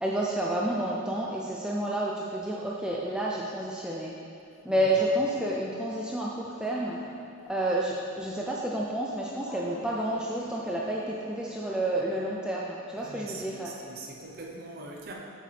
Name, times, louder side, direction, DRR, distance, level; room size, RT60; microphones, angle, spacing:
voice 1, 0.0-4.1 4.6-7.0 7.5-13.7, right 1 dB, 5° right, -4 dB, 0.4 m, -30 dB
sound 1, 6.5-7.7 9.4-11.9, equal, 90° left, 1.5 m, -48 dB
voice 2, 13.0-15.1, right 2 dB, 45° right, -1 dB, 0.8 m, -42 dB
7.4 x 6.6 x 3.3 m, 2.6 s
head